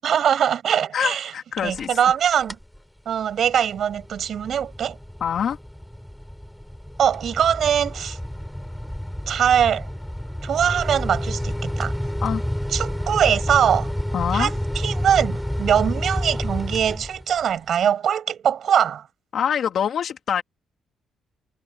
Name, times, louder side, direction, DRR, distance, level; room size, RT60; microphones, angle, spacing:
voice 1, 0.0-1.3 1.6-2.6 3.1-5.0 7.0-8.2 9.3-9.9 10.4-11.9 12.7-13.9 14.3-19.0, right 9 dB, 60° right, 7.9 m, -22 dB
voice 2, 0.9-2.0 5.2-5.6 12.2-12.4 14.1-14.5 19.3-20.4, left 8 dB, 60° left, 2.4 m, -25 dB
sound 1, 1.6-2.1 2.4-2.8 3.2-17.5, equal, 5° left, 3.2 m, -29 dB
cardioid pair, 90°, 0 cm